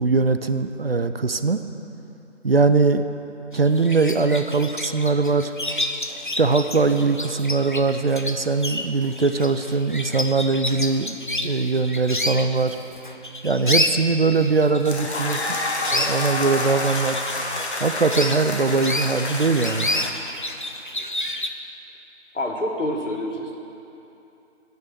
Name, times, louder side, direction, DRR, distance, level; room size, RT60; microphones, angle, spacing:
voice 1, 0.0-1.6 2.4-3.0 3.5-5.5 6.4-11.2 11.4-12.8 13.4-15.6 15.9-17.2 17.8-19.9, right 4 dB, 55° right, 9 dB, 0.5 m, -21 dB
sound 1, 3.5-21.5, left 1 dB, 45° left, 0.4 m, -30 dB
sound 2, 14.8-20.1, left 2 dB, 65° left, 1.2 m, -28 dB
voice 2, 22.3-23.6, left 1 dB, 85° left, 2 dB, 1.6 m, -27 dB
8.7 x 6.5 x 7.2 m, 2.9 s
figure-of-eight pair, 170°, 36 cm